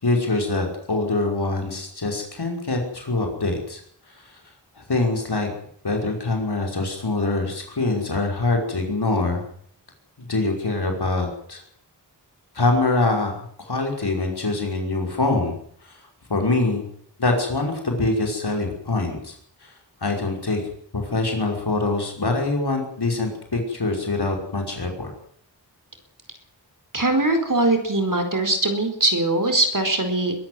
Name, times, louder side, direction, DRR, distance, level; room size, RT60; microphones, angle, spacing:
voice 1, 0.0-3.8 4.1-4.2 4.8-5.5 5.8-9.4 10.2-11.6 12.6-15.5 15.9-16.0 16.3-16.8 17.2-19.3 19.6-19.7 20.0-20.6 20.9-25.1, left 2 dB, 65° left, 2 dB, 5.5 m, -24 dB
voice 2, 26.9-30.3, right 2 dB, 50° right, 7 dB, 4.6 m, -21 dB
22.5 x 13.0 x 9.5 m, 0.65 s
wide cardioid pair, 75°, 42 cm